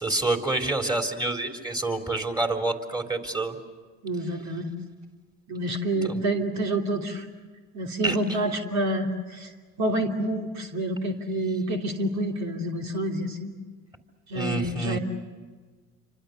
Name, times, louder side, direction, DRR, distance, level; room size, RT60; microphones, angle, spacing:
voice 1, 0.0-3.6 6.0-6.2 8.0-8.2 14.3-15.0, right 2 dB, 15° right, 3 dB, 3.9 m, -27 dB
voice 2, 4.0-4.8 5.5-7.3 7.7-9.5 9.8-13.5 14.3-15.0, right 1 dB, 55° right, 1 dB, 3.0 m, -28 dB
28.5 x 25.5 x 6.8 m, 1.4 s
supercardioid pair, 75°, 32 cm